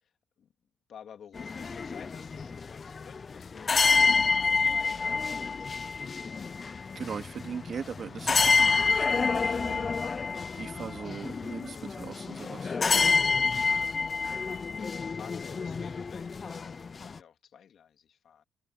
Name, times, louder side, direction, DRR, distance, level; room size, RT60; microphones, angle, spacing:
voice 1, 0.0-0.5 0.9-6.5 13.5-18.4, left 8 dB, 60° left, 2.9 m, -52 dB
sound 1, 1.3-17.2, left 4 dB, 35° left, 0.8 m, -28 dB
voice 2, 7.0-10.0 10.5-12.8, right 6 dB, 50° right, 3.4 m, -40 dB
cardioid pair, 90°, 0 cm